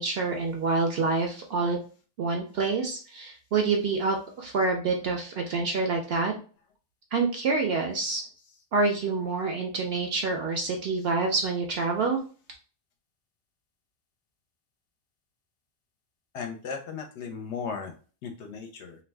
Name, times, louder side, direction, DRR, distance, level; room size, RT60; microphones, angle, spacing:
voice 1, 0.0-1.8 2.2-6.3 7.1-8.2 8.7-12.2, right 3 dB, 65° right, 2 dB, 0.7 m, -27 dB
voice 2, 16.3-17.9 18.2-19.0, left 6 dB, 65° left, 4 dB, 0.8 m, -36 dB
2.5 x 2.1 x 3.2 m, 0.38 s
omnidirectional pair, 1.3 m